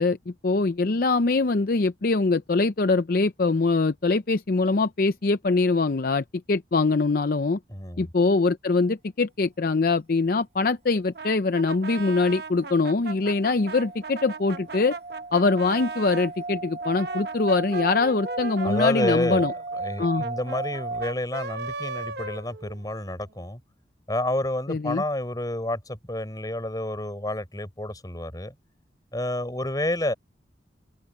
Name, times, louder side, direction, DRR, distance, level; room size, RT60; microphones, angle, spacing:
voice 1, 0.0-7.6 8.0-15.0 15.3-19.5 20.0-20.3 24.7-25.0, left 3 dB, 55° left, 0.6 m, -23 dB
voice 2, 7.7-8.1 18.6-19.5 19.8-23.6 24.1-28.5 29.1-30.1, left 1 dB, 20° left, 4.9 m, -29 dB
Brass instrument, 11.1-16.3 16.8-23.1, right 3 dB, 60° right, 1.3 m, -38 dB
sound 1, 12.7-21.1, right 3 dB, 40° right, 3.3 m, -35 dB
open air
head